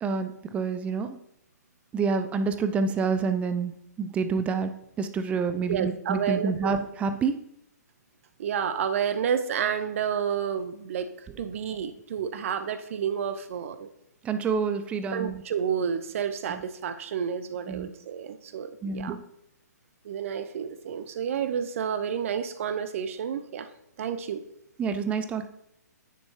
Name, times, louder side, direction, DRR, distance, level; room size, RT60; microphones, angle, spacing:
voice 1, 0.0-1.2 1.9-3.7 4.0-4.7 5.0-7.3 14.2-15.4 16.5-16.6 17.7-17.9 18.8-19.2 24.8-25.5, right 5 dB, 15° right, 9 dB, 0.5 m, -28 dB
voice 2, 5.7-6.7 8.4-11.1 11.4-13.9 15.1-19.1 20.0-23.7 24.0-24.4, right 7 dB, 50° right, 10 dB, 0.7 m, -30 dB
9.9 x 7.0 x 2.9 m, 0.80 s
figure-of-eight pair, 125°, 9 cm